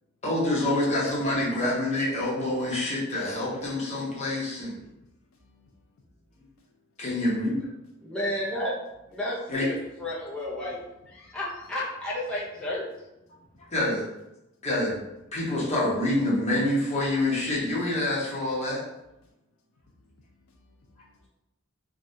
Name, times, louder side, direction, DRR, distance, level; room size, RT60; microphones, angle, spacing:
voice 1, 0.2-4.8 7.0-7.5 9.5-9.6 13.7-14.1 14.6-18.8, left 1 dB, 35° left, 1.0 m, -27 dB
voice 2, 4.8-7.0 11.2-11.4 13.4-13.5 19.2-21.3, left 2 dB, 90° left, 0.5 m, -63 dB
voice 3, 8.0-8.7 9.1-10.8 11.1-12.9, left 1 dB, 5° left, 0.6 m, -32 dB
3.5 x 2.3 x 2.6 m
head